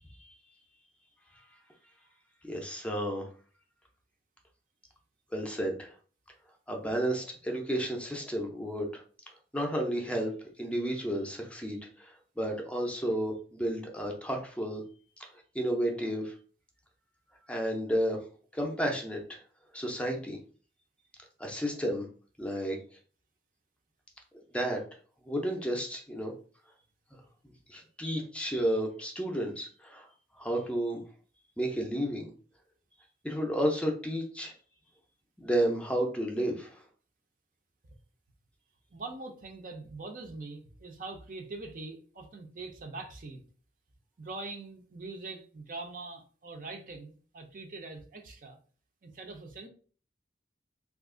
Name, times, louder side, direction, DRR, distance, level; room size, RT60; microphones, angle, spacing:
voice 1, 2.4-3.3 5.3-5.9 6.7-9.0 9.5-10.3 10.6-14.8 15.2-15.3 15.5-16.3 17.5-18.2 18.5-19.4 19.7-20.4 21.4-22.1 22.4-22.8 24.5-24.8 25.2-26.3 27.7-30.1 30.4-31.0 31.6-32.3 33.2-34.5 35.4-36.8, equal, 5° left, 2 dB, 0.5 m, -32 dB
voice 2, 38.9-43.4 44.2-48.6 49.0-49.7, right 3 dB, 50° right, 5 dB, 0.5 m, -43 dB
2.8 x 2.4 x 3.6 m, 0.41 s
head